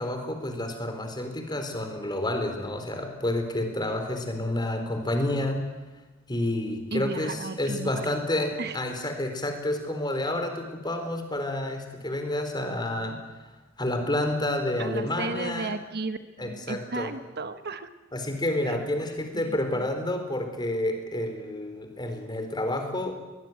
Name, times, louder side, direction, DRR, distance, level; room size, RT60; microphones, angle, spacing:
voice 1, 0.0-5.7 6.3-13.2 13.8-15.7 16.4-17.1 18.1-23.2, left 1 dB, 20° left, 5 dB, 4.2 m, -29 dB
voice 2, 6.9-8.1 8.6-8.8 14.8-17.9 18.6-18.8 19.4-19.8, right 3 dB, 55° right, 10 dB, 1.2 m, -34 dB
23.5 x 20.0 x 9.4 m, 1.2 s
head